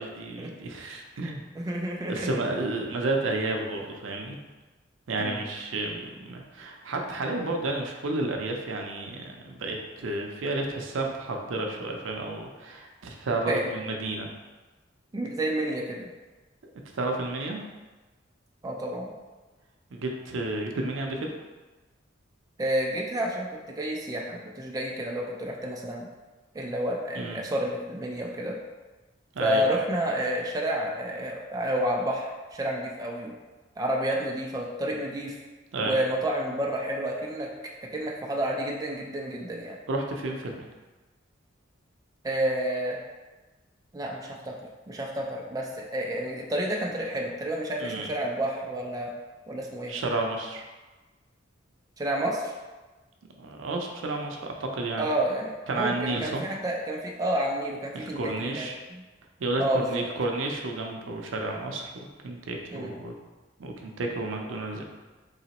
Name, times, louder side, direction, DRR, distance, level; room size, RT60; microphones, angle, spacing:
voice 1, 0.0-1.4 2.1-4.4 5.1-14.3 16.9-17.6 19.9-21.3 27.2-27.4 29.3-29.7 35.7-36.0 39.9-40.7 47.8-48.1 49.9-50.6 53.4-55.1 55.7-56.4 57.9-58.7 59.4-63.1 63.6-64.8, right 2 dB, 75° right, 2 dB, 0.5 m, -31 dB
voice 2, 1.5-2.4 5.2-5.4 13.5-13.7 15.1-16.1 18.6-19.1 22.6-26.1 26.5-28.6 29.4-33.4 33.8-35.3 35.8-37.5 37.9-39.8 42.2-43.0 43.9-44.5 44.9-49.1 49.5-49.9 52.0-52.5 55.0-58.6 58.9-59.0 59.6-60.0 62.7-62.9, right 1 dB, 20° right, -1 dB, 0.4 m, -30 dB
4.0 x 2.9 x 2.9 m, 1.2 s
head